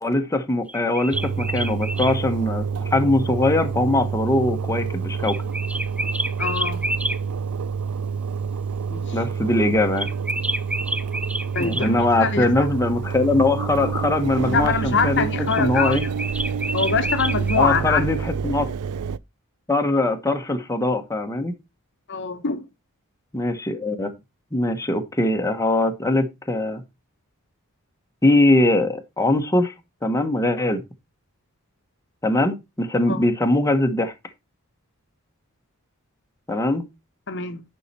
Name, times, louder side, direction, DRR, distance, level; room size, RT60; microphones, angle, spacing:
voice 1, 0.0-5.4 9.1-10.1 11.6-16.0 17.6-18.7 19.7-21.5 23.3-24.1 24.5-26.8 28.2-29.7 30.0-30.8 32.2-34.1 36.5-36.8, left 2 dB, 15° left, 1.1 m, -21 dB
sound 1, 0.7-2.2 5.2-7.2 10.0-11.9 15.5-17.6, right 1 dB, 5° right, 0.4 m, -29 dB
Engine, 1.1-19.2, right 6 dB, 85° right, 0.5 m, -28 dB
voice 2, 6.4-6.8 8.9-9.2 11.5-12.7 14.5-16.1 16.7-18.0 22.1-22.6 33.1-33.2 37.3-37.6, left 5 dB, 55° left, 1.0 m, -24 dB
10.0 x 5.6 x 4.2 m
head